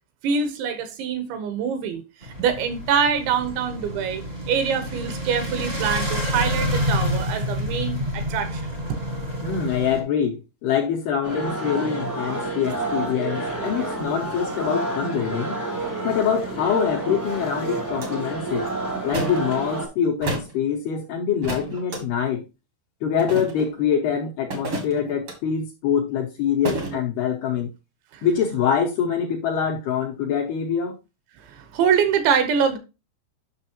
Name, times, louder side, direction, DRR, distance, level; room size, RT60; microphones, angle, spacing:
voice 1, 0.2-8.6 26.9-27.0 28.1-28.3 31.4-32.8, right 7 dB, 75° right, 3.1 m, -24 dB
sound 1, 2.2-10.0, equal, 35° right, 0.9 m, -28 dB
voice 2, 9.4-15.6 16.0-18.7 19.0-22.4 23.0-27.7 28.2-30.9, left 7 dB, 80° left, 2.4 m, -24 dB
sound 2, 11.2-19.8, right 2 dB, 20° right, 0.5 m, -29 dB
sound 3, 18.0-18.1 19.1-19.4 20.2-20.5 21.4-22.0 23.2-23.7 24.5-25.4 26.6-27.0, right 2 dB, 55° right, 1.5 m, -30 dB
9.8 x 6.1 x 2.8 m
omnidirectional pair, 5.6 m